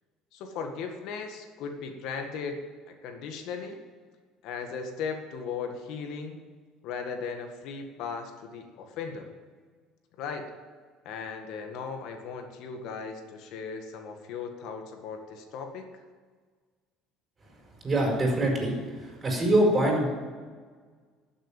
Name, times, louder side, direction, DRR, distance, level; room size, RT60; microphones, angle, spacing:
voice 1, 0.3-2.6 2.9-3.8 4.4-6.4 6.8-9.3 10.2-10.5 11.1-16.0, left 5 dB, 70° left, 5 dB, 1.8 m, -37 dB
voice 2, 17.8-18.7 19.2-20.1, right 1 dB, 25° right, 0 dB, 5.3 m, -23 dB
12.5 x 7.5 x 9.1 m, 1.5 s
supercardioid pair, 105°, 0 cm